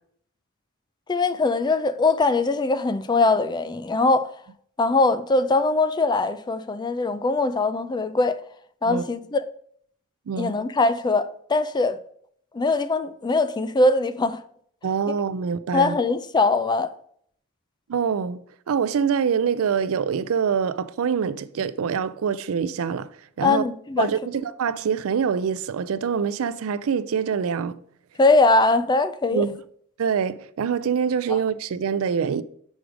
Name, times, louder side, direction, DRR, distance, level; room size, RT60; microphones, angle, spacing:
voice 1, 1.1-4.3 4.8-8.4 8.8-9.4 10.4-12.0 12.5-14.4 15.7-16.9 23.4-24.1 28.2-29.5 31.3-31.4, left 3 dB, 20° left, 0.4 m, -21 dB
voice 2, 14.8-16.0 17.9-18.4 18.7-23.1 23.4-23.6 24.0-27.8 29.2-29.5 30.0-32.4, right 6 dB, 70° right, 0.4 m, -25 dB
6.4 x 4.7 x 5.0 m
head